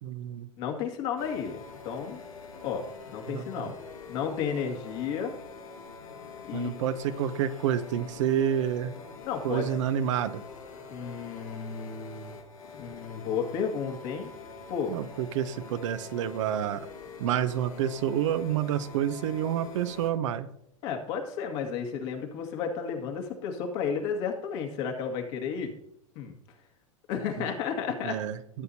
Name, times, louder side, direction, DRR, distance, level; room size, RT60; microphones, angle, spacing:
voice 1, 0.0-0.5 3.3-3.7 6.5-8.9 9.4-10.4 14.9-16.8 17.2-20.5 27.4-27.5 28.0-28.6, right 10 dB, 65° right, 11 dB, 0.8 m, -29 dB
voice 2, 0.6-2.2 2.6-3.8 4.1-5.3 6.5-6.7 9.2-9.7 10.9-12.3 12.7-14.3 14.7-14.9 20.8-25.7 26.2-26.3 27.1-28.2, left 6 dB, 55° left, 3 dB, 2.0 m, -32 dB
sound 1, 1.2-20.1, left 5 dB, 85° left, 2.0 m, -45 dB
14.5 x 8.0 x 2.8 m, 0.75 s
hypercardioid pair, 95°, 17 cm